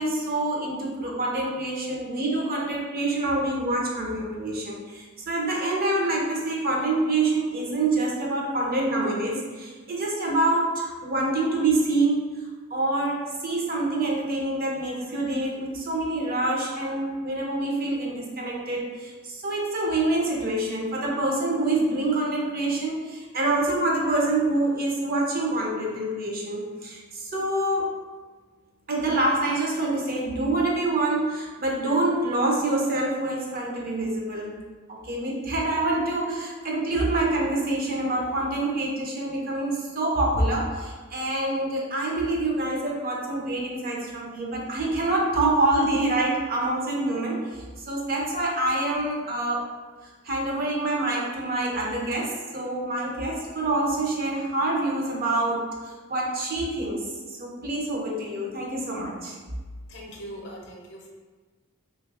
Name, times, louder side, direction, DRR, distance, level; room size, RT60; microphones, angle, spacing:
voice 1, 0.0-12.3 12.7-27.9 28.9-34.6 34.9-49.7 50.2-59.4, right 2 dB, 45° right, -2 dB, 0.5 m, -26 dB
voice 2, 59.9-61.1, equal, 55° left, -1 dB, 0.6 m, -40 dB
3.2 x 2.3 x 3.2 m, 1.4 s
head